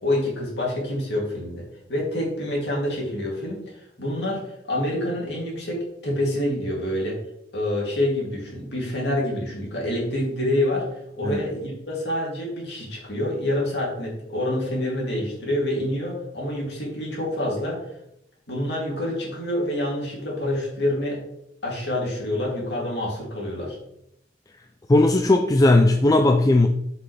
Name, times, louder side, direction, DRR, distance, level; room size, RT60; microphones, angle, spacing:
voice 1, 0.0-1.6 1.9-4.4 4.7-7.2 7.5-10.9 11.1-17.8 18.5-21.2 21.6-23.8, left 1 dB, 65° left, 2.9 m, -27 dB
voice 2, 24.9-26.7, left 2 dB, 20° left, 0.4 m, -17 dB
7.5 x 5.7 x 3.4 m
head